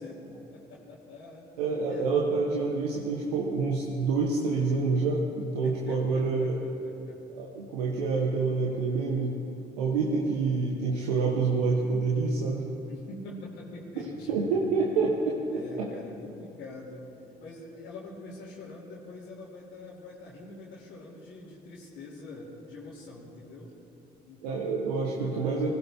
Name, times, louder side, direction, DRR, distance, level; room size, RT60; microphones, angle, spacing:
voice 1, 0.0-1.5 1.9-2.3 5.6-7.2 12.9-14.5 15.5-17.1 17.4-23.7 24.2-25.7, left 2 dB, 70° left, -8 dB, 2.9 m, -44 dB
voice 2, 1.6-6.6 7.3-9.3 9.8-12.7 14.0-15.4 15.8-15.9 24.4-25.7, right 4 dB, 85° right, -2 dB, 1.3 m, -27 dB
20.5 x 16.5 x 3.6 m, 2.9 s
hypercardioid pair, 55°, 20 cm